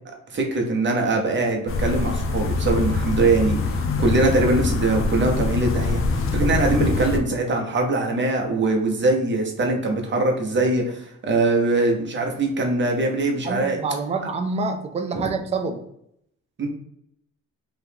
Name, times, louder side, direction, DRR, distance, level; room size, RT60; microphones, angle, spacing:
voice 1, 0.3-3.6 4.0-6.0 6.3-13.8 15.1-15.4 16.6-16.7, right 2 dB, 40° right, 2 dB, 0.9 m, -22 dB
sound 1, 1.7-7.2, left 3 dB, 45° left, 0.5 m, -24 dB
voice 2, 13.4-15.8, right 4 dB, 20° right, 6 dB, 0.4 m, -27 dB
2.9 x 2.5 x 3.4 m, 0.73 s
cardioid pair, 90°, 30 cm